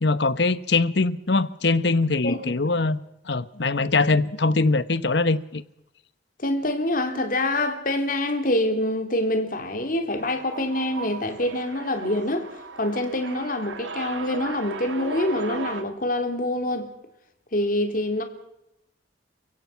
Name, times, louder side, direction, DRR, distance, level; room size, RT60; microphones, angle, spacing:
voice 1, 0.0-3.0 3.3-5.6, left 3 dB, 65° left, 1.0 m, -22 dB
voice 2, 6.4-12.5 12.8-16.9 17.5-18.2, left 1 dB, 50° left, 3.2 m, -25 dB
sound 1, 10.2-15.8, right 4 dB, 85° right, 1.7 m, -37 dB
29.5 x 16.5 x 5.8 m
head